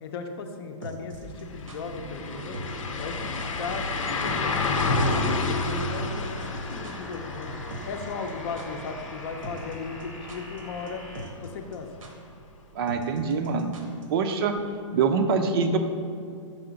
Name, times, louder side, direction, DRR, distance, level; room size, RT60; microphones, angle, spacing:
voice 1, 0.0-2.6 3.0-5.2 5.6-7.5 7.8-11.0 11.4-11.9, left 4 dB, 50° left, 5 dB, 0.6 m, -37 dB
sound 1, 0.8-1.8 2.5-2.9 3.1-3.2 3.4-3.7 4.0-4.1 4.3-4.6 4.8-4.9 5.1-5.2 6.0-7.2 7.4-7.5 7.7-8.3 8.6-8.7 9.4-9.7 10.0-10.6 10.9-11.0 11.1-11.5 11.7-11.8 12.0-12.1 12.9-14.0 14.3-14.4, right 2 dB, 85° right, 1.0 m, -41 dB
passing car, 1.1-1.2 1.5-11.3 11.7-11.8 14.6-14.7, left 3 dB, 85° left, 0.7 m, -30 dB
sound 2, 1.2-11.2, equal, ahead, 0.8 m, -44 dB
voice 2, 12.7-13.7 14.1-14.6 14.9-15.8, right 5 dB, 50° right, 7 dB, 0.5 m, -24 dB
5.5 x 4.8 x 3.9 m, 2.4 s
hypercardioid pair, 145°, 16 cm